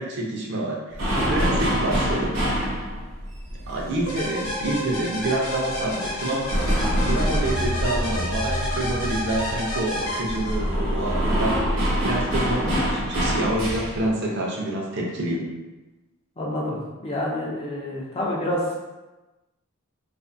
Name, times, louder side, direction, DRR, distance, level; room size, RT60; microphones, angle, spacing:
voice 1, 0.0-1.0 1.3-2.4 3.7-6.5 7.0-15.4, right 1 dB, 55° right, -2 dB, 0.5 m, -27 dB
sound 1, 0.9-5.2 5.5-14.1, equal, 80° right, 1.0 m, -25 dB
voice 2, 1.2-1.6 12.6-12.9 16.4-18.8, left 1 dB, 25° left, -3 dB, 0.4 m, -28 dB
sound 2, 4.1-10.9, left 1 dB, 80° left, 0.9 m, -30 dB
2.5 x 2.5 x 2.4 m, 1.1 s
head